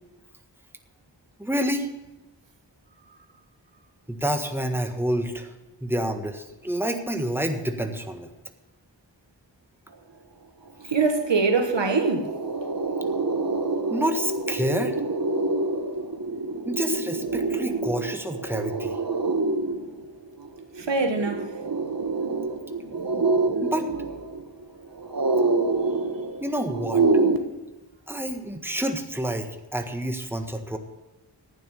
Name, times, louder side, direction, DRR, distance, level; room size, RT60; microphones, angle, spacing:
voice 1, 1.4-1.9 4.1-5.5 5.8-8.3 13.9-15.0 16.6-19.0 23.6-23.9 26.4-27.0 28.1-30.8, right 1 dB, 5° right, 1.5 m, -28 dB
sound 1, 10.8-10.9 11.2-27.4, right 3 dB, 55° right, 1.5 m, -27 dB
voice 2, 10.8-12.3 20.8-21.5, right 4 dB, 85° right, 1.5 m, -23 dB
11.5 x 9.3 x 7.1 m
wide cardioid pair, 50°, 43 cm